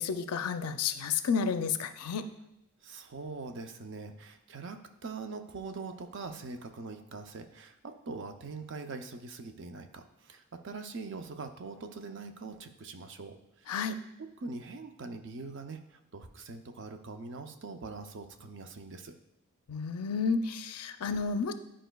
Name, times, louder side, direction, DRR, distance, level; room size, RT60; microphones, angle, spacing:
voice 1, 0.0-2.3 13.7-14.0 19.7-21.5, left 5 dB, 80° left, 10 dB, 0.4 m, -31 dB
voice 2, 2.8-13.8 14.4-19.1, right 3 dB, 55° right, 7 dB, 0.5 m, -43 dB
10.0 x 5.0 x 2.3 m, 0.84 s
head